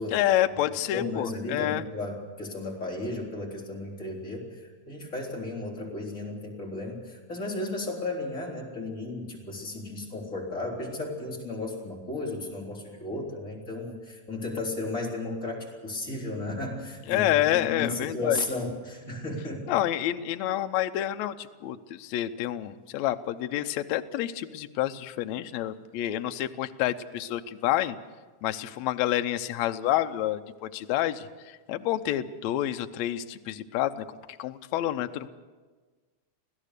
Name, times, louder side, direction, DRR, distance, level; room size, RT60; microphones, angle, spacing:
voice 1, 0.1-1.8 17.1-18.4 19.7-28.0 28.4-31.3 31.7-34.1 34.4-35.3, left 13 dB, 70° left, 8 dB, 1.9 m, -28 dB
voice 2, 0.9-19.8, left 2 dB, 25° left, -2 dB, 4.0 m, -34 dB
26.0 x 16.5 x 6.7 m, 1.4 s
omnidirectional pair, 3.6 m